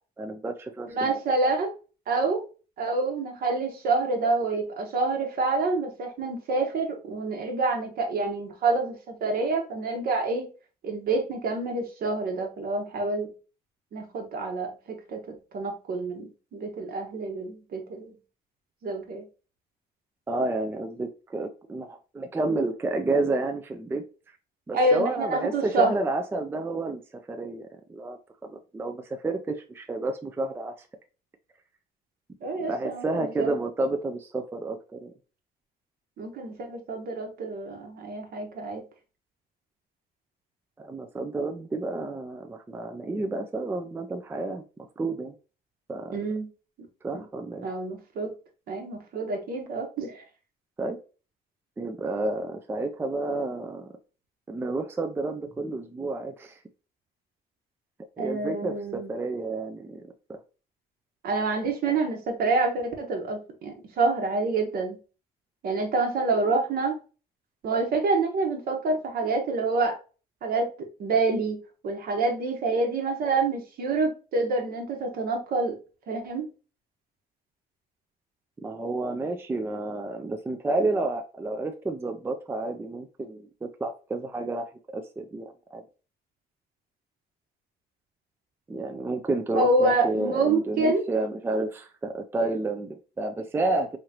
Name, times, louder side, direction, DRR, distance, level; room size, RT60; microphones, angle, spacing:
voice 1, 0.2-1.1 20.3-24.0 24.7-27.0 27.3-30.7 32.6-35.1 40.8-44.6 45.0-45.3 45.9-46.2 47.0-47.7 50.8-51.0 51.8-53.9 54.5-56.6 58.2-60.4 78.6-85.8 88.7-94.0, right 2 dB, 15° right, 6 dB, 0.4 m, -30 dB
voice 2, 0.9-1.7 2.1-2.4 2.8-10.4 10.8-13.3 13.9-14.7 15.1-15.2 15.5-18.1 18.8-19.2 24.7-25.9 32.4-33.5 36.2-38.8 46.1-46.5 47.1-47.2 47.6-48.3 48.7-50.2 58.2-59.1 61.2-65.0 65.6-66.9 67.6-69.9 70.4-70.7 71.0-71.6 71.8-75.7 76.1-76.5 89.5-91.0, right 3 dB, 60° right, 3 dB, 1.2 m, -27 dB
3.7 x 3.1 x 2.8 m, 0.34 s
cardioid pair, 110°, 17 cm